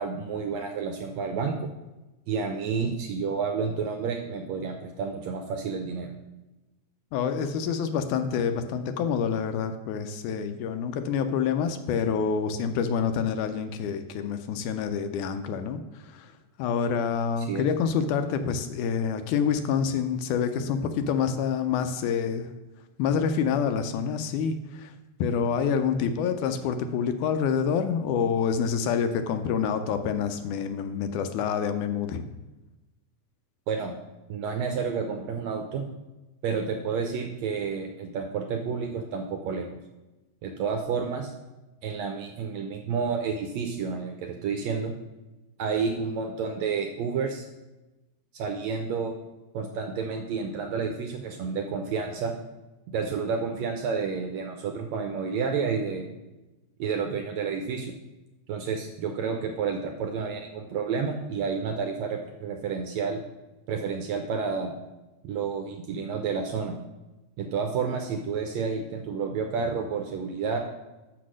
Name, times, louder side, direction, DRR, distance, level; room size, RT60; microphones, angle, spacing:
voice 1, 0.0-1.7 2.3-6.1 17.4-17.7 33.7-33.9 34.3-35.8 36.4-39.8 40.4-41.3 41.8-44.9 45.6-47.5 48.3-49.1 49.5-52.3 52.9-56.2 56.8-57.9 58.5-63.2 63.7-64.7 65.2-66.8 67.4-70.6, right 5 dB, 75° right, 3 dB, 1.6 m, -30 dB
voice 2, 7.1-16.3 16.6-22.5 23.0-24.9 25.2-32.2, left 7 dB, 80° left, 8 dB, 2.0 m, -27 dB
6.6 x 6.0 x 6.2 m, 1.1 s
omnidirectional pair, 3.7 m